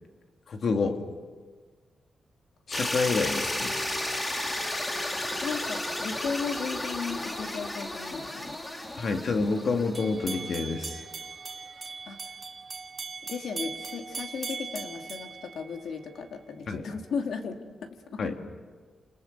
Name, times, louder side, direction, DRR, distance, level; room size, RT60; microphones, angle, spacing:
voice 1, 0.5-1.0 2.7-3.7 8.9-11.0 16.7-16.9 18.2-18.4, left 4 dB, 50° left, 4 dB, 2.5 m, -28 dB
sound 1, 2.7-10.7, left 1 dB, 15° left, 2.2 m, -33 dB
voice 2, 5.4-8.6 12.1-12.2 13.2-17.6 17.8-18.2, left 5 dB, 75° left, 4 dB, 2.6 m, -35 dB
sound 2, 9.9-16.2, right 4 dB, 30° right, 2.0 m, -39 dB
29.5 x 28.0 x 6.8 m, 1.5 s
wide cardioid pair, 165°, 0 cm